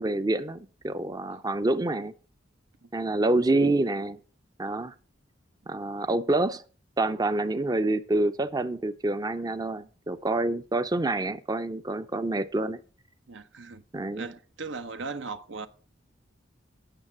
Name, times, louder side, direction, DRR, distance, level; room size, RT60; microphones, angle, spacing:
voice 1, 0.0-2.1 2.9-4.2 4.6-4.9 5.7-6.6 7.0-12.8 13.9-14.3, right 2 dB, 20° right, 0.5 m, -27 dB
voice 2, 13.3-13.8 14.2-15.7, right 4 dB, 85° right, 0.9 m, -37 dB
8.9 x 6.6 x 7.2 m
head